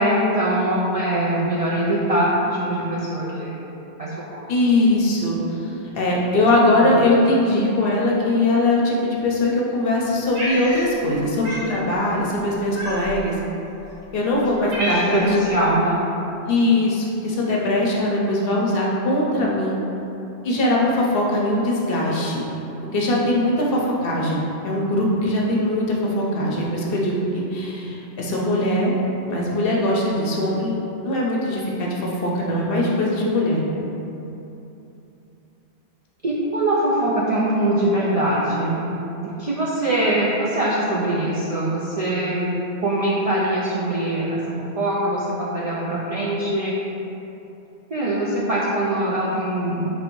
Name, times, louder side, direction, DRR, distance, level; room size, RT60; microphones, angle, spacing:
voice 1, 0.0-3.6 4.0-4.5 6.8-7.1 14.6-16.1 36.2-38.8 39.2-42.5 42.8-46.8 47.9-49.9, right 1 dB, 60° right, -6 dB, 0.3 m, -22 dB
voice 2, 4.5-13.4 14.1-15.3 16.5-19.8 20.4-22.4 22.9-28.9 29.2-33.6, left 1 dB, 65° left, -3 dB, 0.8 m, -21 dB
Cat, 10.3-11.2 11.4-11.7 12.7-13.3 14.0-14.1 14.4-15.4, equal, 85° right, 1.3 m, -29 dB
3.4 x 2.6 x 4.5 m, 2.9 s
omnidirectional pair, 1.1 m